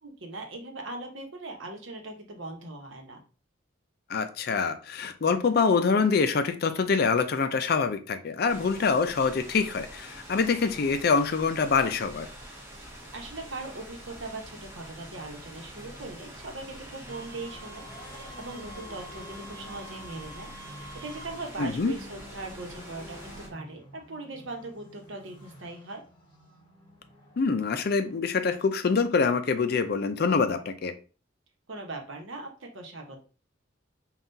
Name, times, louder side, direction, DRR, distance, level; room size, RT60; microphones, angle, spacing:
voice 1, 0.0-3.2 12.8-17.8 18.1-26.0 31.7-33.2, right 2 dB, 80° right, 0.9 m, -40 dB
voice 2, 4.1-12.3 21.6-21.9 27.4-30.9, left 5 dB, 50° left, 0.4 m, -25 dB
sound 1, 8.5-23.5, right 1 dB, 15° right, 0.8 m, -46 dB
sound 2, 14.4-28.7, left 1 dB, 25° left, 1.6 m, -50 dB
Wind instrument woodwind instrument, 17.1-21.4, right 1 dB, 50° right, 0.4 m, -48 dB
5.5 x 2.4 x 2.6 m
head